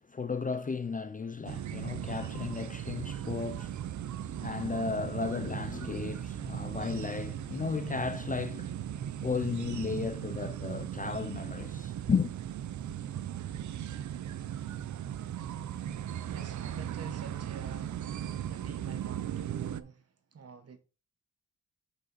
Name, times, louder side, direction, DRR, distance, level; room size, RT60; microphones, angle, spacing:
voice 1, 0.0-4.1 4.4-8.7 9.2-12.3, left 5 dB, 25° left, 0.4 m, -34 dB
sound 1, 1.5-19.8, right 10 dB, 70° right, 0.5 m, -38 dB
voice 2, 16.3-20.8, right 5 dB, 50° right, 1.0 m, -49 dB
6.5 x 5.1 x 4.0 m
wide cardioid pair, 165°, 31 cm